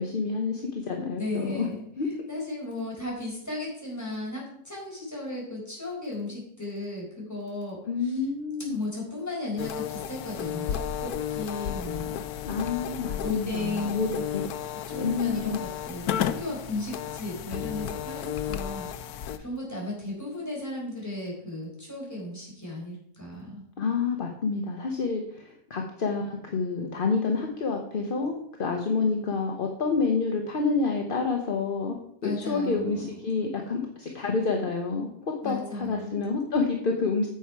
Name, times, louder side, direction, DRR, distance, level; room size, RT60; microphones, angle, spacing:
voice 1, 0.0-1.7 2.0-2.1 7.9-8.8 12.4-14.4 15.0-15.6 23.8-37.3, left 4 dB, 40° left, 2 dB, 0.9 m, -28 dB
voice 2, 1.2-1.7 2.3-8.2 8.7-12.2 13.2-14.2 14.9-23.6 32.2-33.3 35.4-36.1, left 2 dB, 10° left, -4 dB, 4.5 m, -35 dB
sound 1, 9.6-19.4, left 9 dB, 70° left, 1.0 m, -33 dB
9.4 x 7.1 x 4.6 m, 0.68 s
omnidirectional pair, 1.8 m